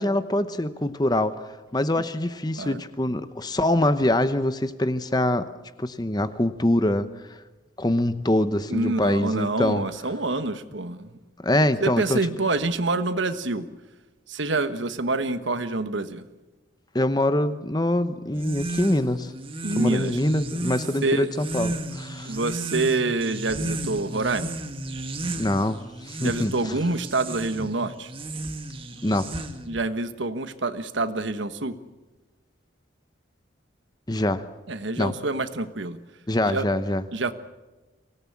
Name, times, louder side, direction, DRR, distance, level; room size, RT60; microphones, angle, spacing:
voice 1, 0.0-1.4 1.7-5.5 5.8-7.1 7.8-9.8 11.4-12.2 16.9-19.3 19.8-22.4 25.4-26.8 29.0-29.3 34.1-34.4 35.0-35.1 36.3-37.0, left 1 dB, 20° left, 12 dB, 0.9 m, -24 dB
voice 2, 8.7-11.1 11.8-13.7 14.3-16.2 19.6-20.2 21.0-21.3 22.2-24.5 26.2-28.1 29.7-31.8 34.7-36.0 36.4-36.6 37.1-37.3, right 2 dB, 70° right, 11 dB, 1.3 m, -26 dB
sound 1, 18.3-29.8, right 1 dB, 25° right, 1.5 m, -34 dB
24.5 x 18.5 x 8.6 m, 1.2 s
head